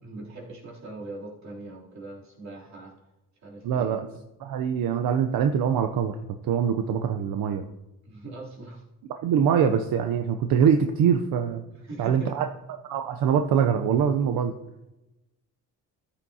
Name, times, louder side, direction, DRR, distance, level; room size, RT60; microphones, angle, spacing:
voice 1, 0.0-2.9 3.4-4.0 8.0-8.8 11.7-12.4, right 2 dB, 50° right, -4 dB, 3.2 m, -41 dB
voice 2, 3.6-4.1 4.4-6.2 6.4-7.6 9.2-11.6 12.0-12.4 12.9-14.5, right 7 dB, 80° right, 6 dB, 0.7 m, -23 dB
14.0 x 8.7 x 2.8 m, 0.99 s
cardioid pair, 135°, 34 cm